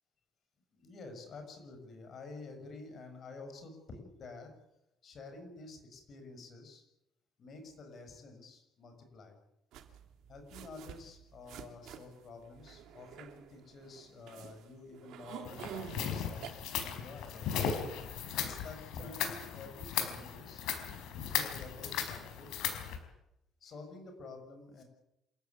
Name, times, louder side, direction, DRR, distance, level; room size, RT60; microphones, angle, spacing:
voice 1, 0.7-4.5 5.0-6.8 7.4-9.4 10.3-16.5 16.8-17.8 18.4-20.7 21.1-22.5 23.6-24.8, left 3 dB, 40° left, 5 dB, 6.2 m, -49 dB
sound 1, 9.7-16.5, right 9 dB, 75° right, 2.7 m, -49 dB
sound 2, 15.4-23.0, left 8 dB, 85° left, 4.6 m, -37 dB
27.0 x 14.5 x 9.5 m, 0.89 s
cardioid pair, 150°, 0 cm